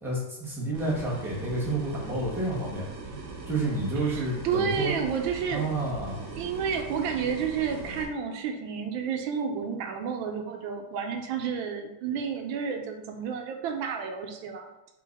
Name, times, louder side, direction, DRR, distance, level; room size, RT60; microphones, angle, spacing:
voice 1, 0.0-2.9 3.5-4.9 5.5-6.2, right 2 dB, ahead, -6 dB, 0.6 m, -30 dB
sound 1, 0.7-8.0, right 3 dB, 55° right, 0.8 m, -40 dB
voice 2, 4.0-5.7 6.4-14.7, right 6 dB, 80° right, 4 dB, 1.4 m, -31 dB
3.8 x 2.8 x 4.0 m, 0.94 s
omnidirectional pair, 2.1 m